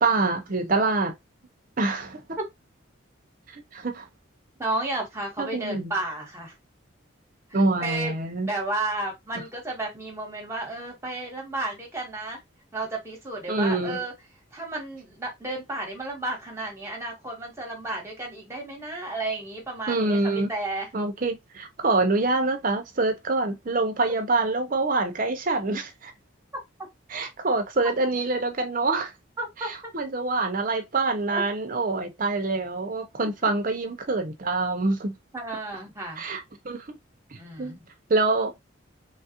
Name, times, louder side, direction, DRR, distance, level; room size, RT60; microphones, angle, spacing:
voice 1, 0.0-1.1 1.8-2.4 3.5-4.1 5.4-5.9 7.5-8.5 13.5-14.0 19.9-20.5 20.9-26.1 27.1-29.1 29.6-35.1 36.2-37.0 37.6-37.8 38.1-38.5, right 3 dB, 45° right, 0.7 m, -25 dB
voice 2, 4.6-6.5 7.5-8.1 8.4-12.4 12.7-14.1 14.5-20.9 29.4-29.7 31.3-31.4 33.2-33.5 35.3-36.2 37.3-37.8, right 2 dB, 15° right, 1.2 m, -32 dB
3.2 x 2.4 x 2.8 m
head